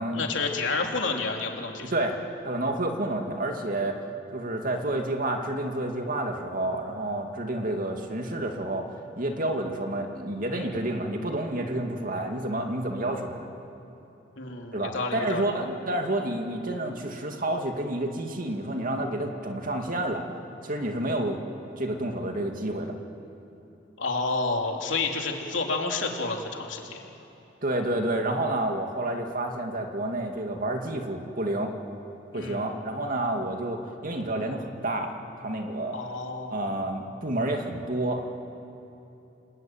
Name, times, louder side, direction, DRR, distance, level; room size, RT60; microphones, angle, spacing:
voice 1, 0.1-1.9 14.4-15.5 24.0-27.0 32.3-32.6 35.9-36.6, left 3 dB, 85° left, 1 dB, 3.3 m, -30 dB
voice 2, 2.4-4.0 4.3-13.5 14.7-20.2 20.6-21.4 21.8-23.0 27.6-31.7 32.3-36.0 36.5-38.2, right 1 dB, 50° right, 3 dB, 2.5 m, -29 dB
29.0 x 20.5 x 9.3 m, 2.9 s
head